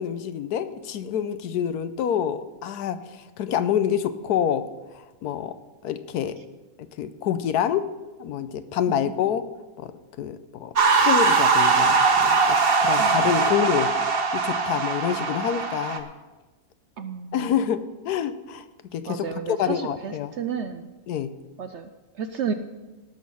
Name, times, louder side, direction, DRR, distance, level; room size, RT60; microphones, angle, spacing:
voice 1, 0.0-5.6 5.8-6.4 7.0-7.9 8.2-9.5 9.8-9.9 10.2-10.7 11.0-13.9 14.3-16.1 17.3-18.6 18.9-20.3 21.1-21.3, left 9 dB, 80° left, 12 dB, 1.2 m, -27 dB
sound 1, 10.8-16.0, right 4 dB, 40° right, 1.0 m, -21 dB
voice 2, 13.0-13.5 17.0-17.5 19.1-20.9 21.6-22.5, right 6 dB, 65° right, 9 dB, 0.7 m, -32 dB
17.5 x 6.5 x 5.5 m, 1.2 s
omnidirectional pair, 1.7 m